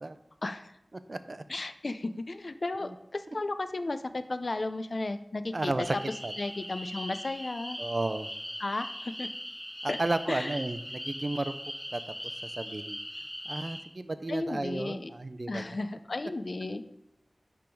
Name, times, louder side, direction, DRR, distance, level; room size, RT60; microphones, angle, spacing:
voice 1, 0.4-0.7 1.5-5.7 6.4-7.8 8.6-9.3 9.9-10.0 10.3-10.6 14.3-15.1 15.5-16.8, left 2 dB, 65° left, 10 dB, 0.5 m, -34 dB
voice 2, 1.1-1.4 2.9-3.0 5.5-6.0 6.2-6.3 7.8-8.3 9.8-11.5 11.9-12.0 12.4-13.0 13.5-15.8, right 2 dB, 55° right, 11 dB, 0.5 m, -33 dB
sound 1, 5.8-13.8, equal, 5° left, 2.3 m, -40 dB
10.0 x 3.6 x 4.6 m, 0.84 s
wide cardioid pair, 45°, 0 cm